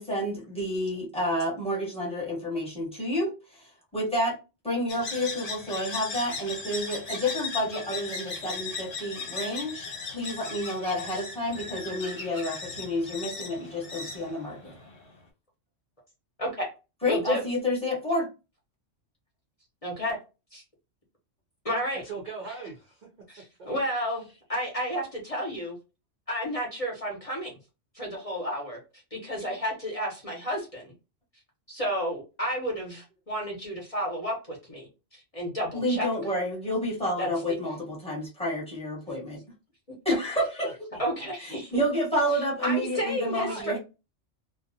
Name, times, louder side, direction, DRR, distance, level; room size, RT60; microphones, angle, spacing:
voice 1, 0.0-4.4 4.6-14.7 17.0-18.3 35.7-39.4 40.0-40.9 41.7-43.8, equal, 5° left, 1.0 m, -29 dB
sound 1, 4.9-15.1, left 4 dB, 75° left, 1.3 m, -37 dB
voice 2, 17.1-17.4 19.8-20.2 20.5-20.6 21.6-22.0 23.3-25.8 26.3-27.6 27.9-28.8 29.1-30.9 31.7-36.1 37.2-37.3 41.0-41.8 42.6-43.7, equal, 35° left, 0.8 m, -31 dB
voice 3, 21.9-23.1 24.3-24.4 40.9-41.0 41.5-41.6 43.4-43.8, right 3 dB, 50° right, 0.5 m, -39 dB
2.5 x 2.3 x 2.6 m
omnidirectional pair, 1.3 m